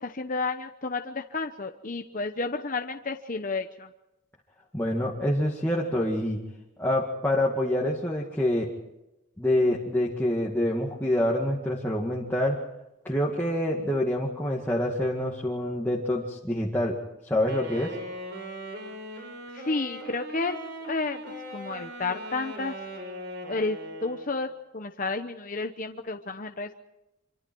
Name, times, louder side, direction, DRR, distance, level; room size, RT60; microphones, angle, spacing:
voice 1, 0.0-3.9 19.5-20.6 20.9-22.8 23.5-26.7, left 3 dB, 40° left, 6 dB, 0.9 m, -31 dB
voice 2, 4.7-6.4 6.8-8.7 9.4-12.6 13.0-17.0 17.2-17.9, left 1 dB, 10° left, -3 dB, 2.0 m, -26 dB
Wind instrument woodwind instrument, 17.5-24.4, equal, 50° right, 6.6 m, -40 dB
26.5 x 25.0 x 4.7 m, 0.94 s
head